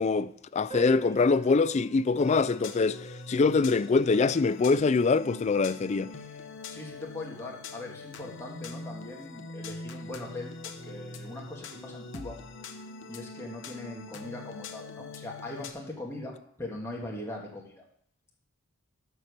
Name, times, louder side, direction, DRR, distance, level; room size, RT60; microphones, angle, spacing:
voice 1, 0.0-6.1, left 4 dB, 30° left, 0.3 m, -24 dB
sound 1, 0.7-5.7, right 6 dB, 25° right, 1.8 m, -48 dB
sound 2, 2.2-15.7, left 3 dB, 60° left, 0.9 m, -43 dB
voice 2, 6.7-12.4 13.1-17.8, left 2 dB, 10° left, 1.8 m, -41 dB
12.0 x 4.5 x 6.6 m
head